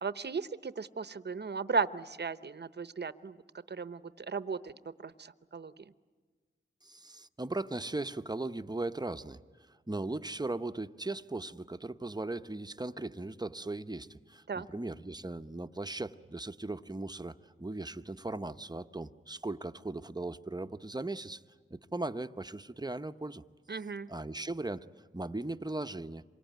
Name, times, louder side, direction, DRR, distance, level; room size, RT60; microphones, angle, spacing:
voice 1, 0.0-3.4 3.7-5.9 14.5-14.7 23.7-24.1, right 5 dB, 55° right, 14 dB, 0.9 m, -36 dB
voice 2, 6.8-21.4 21.7-23.4 24.1-26.2, right 2 dB, 20° right, 9 dB, 0.8 m, -38 dB
27.0 x 24.0 x 9.3 m, 1.4 s
wide cardioid pair, 65°, 21 cm